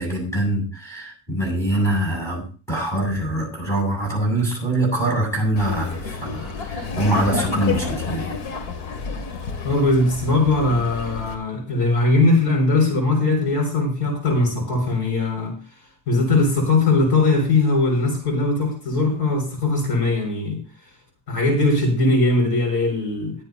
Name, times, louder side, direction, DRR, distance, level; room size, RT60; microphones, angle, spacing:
voice 1, 0.0-8.4, right 1 dB, 5° left, -2 dB, 7.6 m, -24 dB
Laughter, 5.6-11.3, left 5 dB, 85° left, 2.7 m, -30 dB
voice 2, 9.6-15.5 16.1-20.6 21.3-23.3, left 2 dB, 60° left, 1 dB, 6.7 m, -20 dB
22.5 x 7.9 x 2.9 m, 0.36 s
cardioid pair, 155°, 45 cm